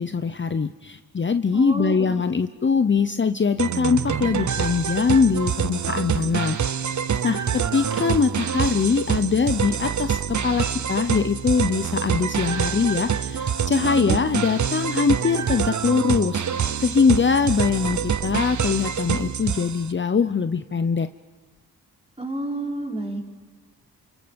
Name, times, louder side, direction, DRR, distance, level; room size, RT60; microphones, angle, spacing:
voice 1, 0.0-6.6 7.2-16.4 16.8-21.1, left 5 dB, 35° left, 10 dB, 0.8 m, -22 dB
voice 2, 1.5-2.2 13.7-14.2 22.2-23.2, right 2 dB, 15° right, -2 dB, 5.8 m, -29 dB
sound 1, 3.6-19.9, right 7 dB, 55° right, 0.9 m, -26 dB
sound 2, 4.0-5.4 6.5-6.6 6.8-6.9 7.9-8.5, right 4 dB, 80° right, 2.2 m, -42 dB
28.5 x 28.0 x 5.3 m, 1.4 s
cardioid pair, 50°, 35 cm